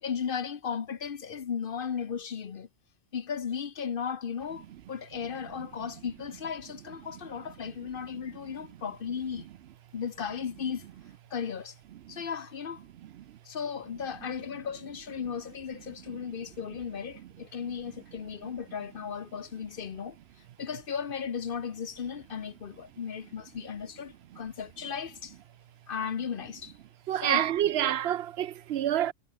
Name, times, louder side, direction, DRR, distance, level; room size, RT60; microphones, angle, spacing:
voice 1, 0.0-2.7 3.1-9.5 9.9-10.9 11.3-11.8 12.1-12.8 13.4-20.2 20.6-25.3 25.9-26.8 27.2-27.5, left 7 dB, 55° left, 1.0 m, -36 dB
voice 2, 13.0-13.4 27.1-29.1, right 11 dB, 70° right, 0.8 m, -28 dB
omnidirectional pair, 1.1 m